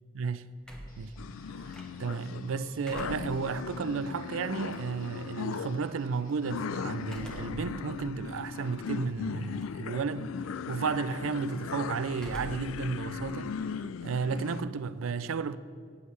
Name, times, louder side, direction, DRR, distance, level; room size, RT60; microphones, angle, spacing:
voice 1, 0.1-0.5 1.0-1.2 1.6-1.7 2.0-10.3 10.7-15.6, right 5 dB, 80° right, 0.4 m, -33 dB
sound 1, 0.6-2.2 2.6-5.2 7.0-7.7 8.2-8.3 9.4-9.8 10.1-10.6 12.1-12.8 13.1-14.5, equal, 5° left, 1.2 m, -47 dB
Guitar, 0.9-7.6, left 2 dB, 45° left, 1.2 m, -62 dB
sound 2, 1.2-14.6, left 6 dB, 85° left, 0.4 m, -38 dB
14.5 x 9.7 x 3.3 m
head